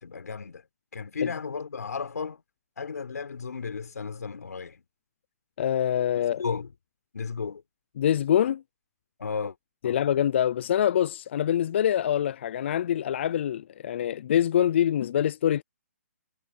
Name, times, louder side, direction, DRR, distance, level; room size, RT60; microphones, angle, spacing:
voice 1, 0.0-0.7 0.9-2.4 2.8-4.8 6.2-6.7 7.1-7.6 9.2-9.6 9.8-10.0, left 5 dB, 85° left, 4.0 m, -34 dB
voice 2, 5.6-6.4 8.0-8.6 9.8-15.6, left 10 dB, 45° left, 0.4 m, -25 dB
hypercardioid pair, 160°, 9 cm